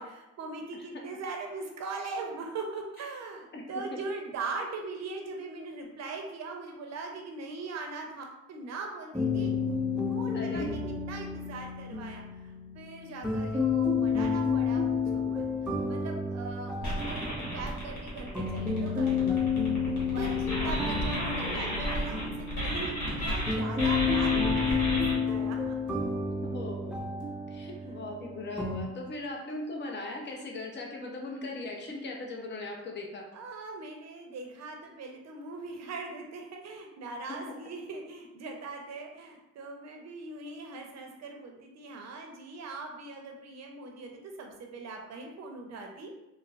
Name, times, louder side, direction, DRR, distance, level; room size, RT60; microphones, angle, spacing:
voice 1, 0.0-9.5 10.1-10.8 11.1-15.4 15.9-19.2 20.1-25.9 33.3-46.1, right 3 dB, 60° right, 2 dB, 0.7 m, -41 dB
sound 1, 9.1-28.8, left 5 dB, 5° right, 0.4 m, -31 dB
voice 2, 10.3-11.0 26.5-27.2 27.5-33.2 37.3-37.4, left 2 dB, 35° left, 0 dB, 0.6 m, -39 dB
sound 2, 16.8-23.5 23.8-25.1, equal, 75° left, 1.2 m, -32 dB
3.9 x 2.0 x 2.4 m, 0.93 s
cardioid pair, 90°, 30 cm